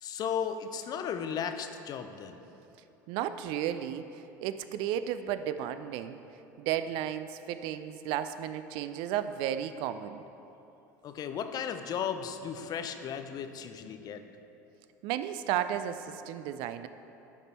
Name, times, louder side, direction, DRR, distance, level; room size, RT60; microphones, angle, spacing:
voice 1, 0.0-2.4 11.0-14.2, left 7 dB, 45° left, 8 dB, 0.5 m, -35 dB
voice 2, 3.1-6.2 6.6-10.2 15.0-16.9, right 10 dB, 60° right, 11 dB, 0.3 m, -33 dB
11.0 x 3.6 x 4.2 m, 2.9 s
hypercardioid pair, 80°, 9 cm